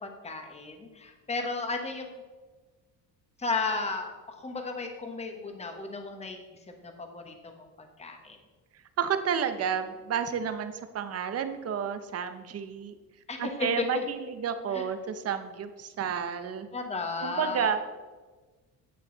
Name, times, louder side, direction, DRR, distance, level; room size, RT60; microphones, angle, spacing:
voice 1, 0.0-2.1 3.4-6.4 6.8-7.7 8.0-8.4 13.3-13.8 14.7-14.8 16.7-17.7, left 3 dB, 20° left, 4 dB, 1.1 m, -34 dB
voice 2, 9.0-13.0 13.4-16.7 17.2-17.9, right 7 dB, 45° right, 10 dB, 0.8 m, -31 dB
10.5 x 8.4 x 3.9 m, 1.3 s
cardioid pair, 170°, 35 cm